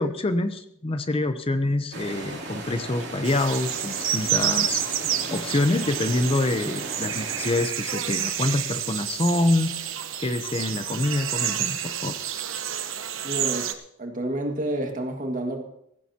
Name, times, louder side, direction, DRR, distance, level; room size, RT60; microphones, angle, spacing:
voice 1, 0.0-9.7 10.2-12.2, left 2 dB, 30° left, 0.7 m, -26 dB
sound 1, 1.9-7.6, right 2 dB, 60° right, 2.9 m, -37 dB
sound 2, 3.2-13.7, right 10 dB, 85° right, 1.0 m, -29 dB
voice 2, 13.2-13.7 14.0-15.6, right 1 dB, 45° right, 1.9 m, -29 dB
16.5 x 15.5 x 2.9 m
head